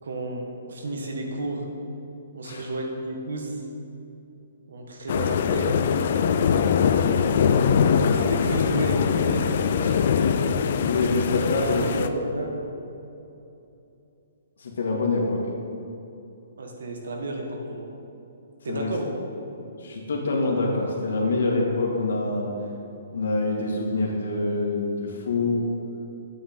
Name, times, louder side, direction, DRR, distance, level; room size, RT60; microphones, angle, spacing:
voice 1, 0.0-1.6 2.3-3.5 4.7-5.8 6.8-7.3 8.0-9.9 11.0-11.1 11.6-12.5 16.6-17.9 18.6-19.1, right 1 dB, 90° right, 1 dB, 1.7 m, -32 dB
sound 1, 5.1-12.1, left 7 dB, 45° left, 0.4 m, -22 dB
voice 2, 10.8-12.1 14.6-15.5 18.7-18.9 19.8-22.5 23.1-25.7, left 3 dB, 80° left, -1 dB, 2.1 m, -26 dB
9.5 x 8.5 x 3.8 m, 2.8 s
hypercardioid pair, 175°, 0 cm